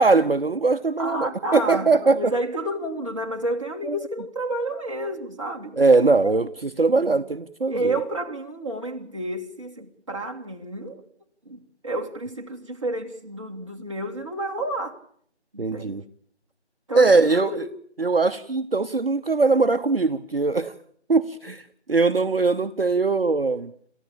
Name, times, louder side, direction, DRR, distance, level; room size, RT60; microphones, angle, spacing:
voice 1, 0.0-2.3 3.9-4.0 5.8-8.0 15.6-16.0 16.9-17.6 18.0-20.7 21.1-23.7, right 3 dB, 55° right, 0.9 m, -21 dB
voice 2, 1.0-5.8 6.1-6.3 6.9-7.2 7.7-11.0 11.5-15.0 15.5-16.0 16.9-17.7, right 1 dB, 25° right, 1.8 m, -30 dB
28.0 x 14.5 x 8.5 m
figure-of-eight pair, 170°, 34 cm